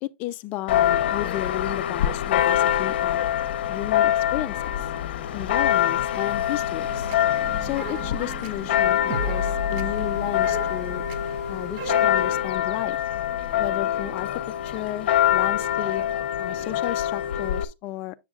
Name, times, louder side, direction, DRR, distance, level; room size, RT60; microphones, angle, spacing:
voice 1, 0.0-3.2 3.7-4.7 5.3-7.1 7.6-11.0 11.5-13.0 13.6-14.3 14.7-16.0 16.4-18.2, left 16 dB, 25° left, 0.4 m, -33 dB
Church bell, 0.7-17.6, left 11 dB, 60° left, 0.8 m, -25 dB
sound 1, 6.8-12.4, equal, 30° right, 0.8 m, -34 dB
8.6 x 7.1 x 2.4 m
supercardioid pair, 175°, 6 cm